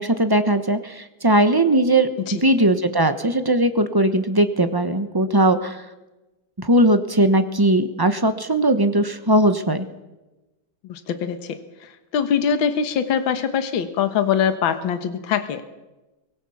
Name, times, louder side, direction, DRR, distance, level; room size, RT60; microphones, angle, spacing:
voice 1, 0.0-5.8 6.6-9.9, right 1 dB, 20° right, 9 dB, 0.6 m, -19 dB
voice 2, 10.8-11.6 12.1-15.6, left 7 dB, 70° left, 9 dB, 2.0 m, -22 dB
24.0 x 19.5 x 7.1 m, 1.1 s
omnidirectional pair, 2.3 m